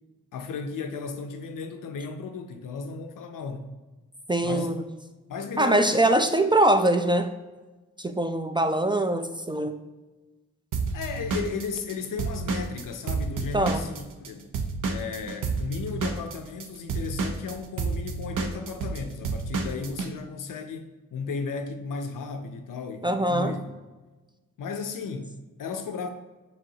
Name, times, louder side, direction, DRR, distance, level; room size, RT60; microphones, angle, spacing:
voice 1, 0.3-3.7 4.4-4.7 5.3-5.9 6.2-6.3 10.9-14.5 14.8-23.6 24.6-26.1, left 5 dB, 75° left, 0.5 m, -35 dB
voice 2, 4.3-4.8 5.6-7.3 8.0-9.8 13.5-13.8 23.0-23.5, right 1 dB, 15° right, 0.3 m, -23 dB
Drum kit / Drum, 10.7-14.3 14.5-20.1, right 4 dB, 75° right, 0.6 m, -30 dB
4.1 x 4.0 x 2.7 m
supercardioid pair, 40°, 32 cm